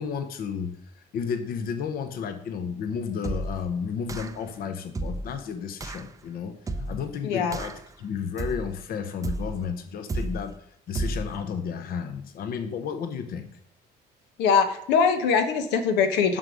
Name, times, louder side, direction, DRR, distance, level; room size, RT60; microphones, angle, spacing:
voice 1, 0.0-13.5, left 6 dB, 60° left, 8 dB, 0.9 m, -32 dB
sound 1, 3.2-3.7 4.1-4.5 4.9-5.4 5.8-6.1 6.7-7.1 7.5-7.9 8.4-8.8 9.2-9.7 10.1-10.5 10.9-11.4, right 2 dB, 20° right, 0.5 m, -32 dB
voice 2, 7.2-7.6 14.4-16.4, left 6 dB, 90° left, 6 dB, 1.1 m, -22 dB
7.4 x 5.3 x 6.2 m, 0.70 s
cardioid pair, 110°, 17 cm